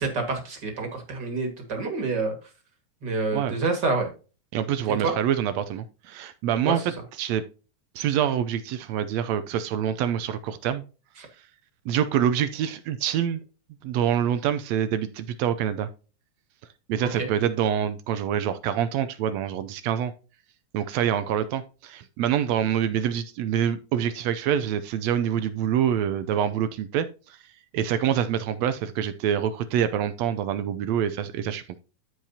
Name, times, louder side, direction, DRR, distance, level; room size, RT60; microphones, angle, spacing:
voice 1, 0.0-2.3 3.0-4.1 4.9-5.1 6.6-6.9 11.2-11.3 17.0-17.3, right 3 dB, 40° right, 4 dB, 2.2 m, -28 dB
voice 2, 4.5-6.9 7.2-7.4 7.9-10.8 11.8-13.4 13.8-15.9 16.9-20.1 20.7-27.4 27.7-31.6, right 9 dB, 75° right, 12 dB, 1.6 m, -26 dB
13.5 x 4.8 x 2.8 m, 0.34 s
omnidirectional pair, 3.5 m